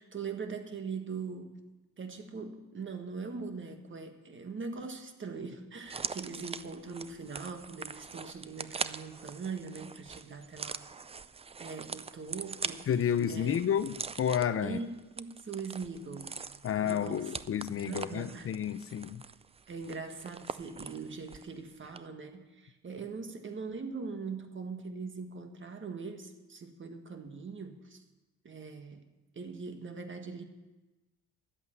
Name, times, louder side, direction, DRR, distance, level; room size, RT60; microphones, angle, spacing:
voice 1, 0.0-1.6 2.0-10.9 11.6-12.9 13.3-13.6 14.6-14.9 15.2-16.4 16.8-17.3 17.9-18.5 19.7-28.0 28.4-29.1 29.4-30.4, right 4 dB, 40° right, 1.7 m, -41 dB
sound 1, 5.8-21.5 21.8-22.0, right 5 dB, 20° right, 0.4 m, -42 dB
voice 2, 12.9-14.8 16.6-19.2, left 9 dB, 45° left, 0.6 m, -30 dB
11.5 x 8.2 x 8.7 m
cardioid pair, 90°, 30 cm